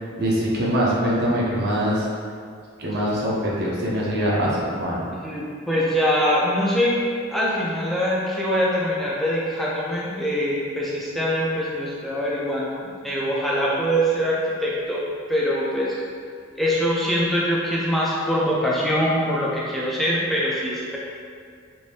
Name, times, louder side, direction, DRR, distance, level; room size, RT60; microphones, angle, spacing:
voice 1, 0.2-2.1 2.8-5.1, equal, 50° right, -5 dB, 0.6 m, -23 dB
voice 2, 5.2-15.0 15.3-16.0 16.6-21.0, equal, ahead, -6 dB, 0.3 m, -23 dB
2.6 x 2.5 x 3.3 m, 2.2 s
head